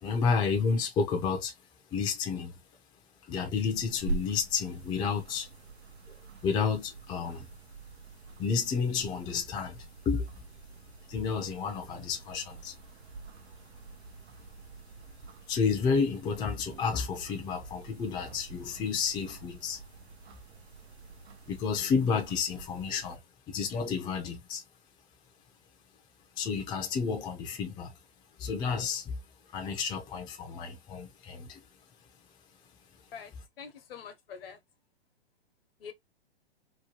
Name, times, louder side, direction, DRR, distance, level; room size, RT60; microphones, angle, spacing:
voice 1, 0.0-1.5 1.9-2.5 3.3-5.5 6.4-7.5 8.4-10.3 11.1-12.8 15.5-19.8 21.5-23.2 23.5-24.6 26.4-27.9 28.4-29.2 29.5-31.6, left 5 dB, 15° left, 0.5 m, -31 dB
sound 1, 3.5-23.2, right 4 dB, 80° right, 0.7 m, -46 dB
voice 2, 33.1-34.6 35.8-35.9, left 7 dB, 65° left, 1.0 m, -45 dB
2.9 x 2.2 x 2.8 m
hypercardioid pair, 130°, 31 cm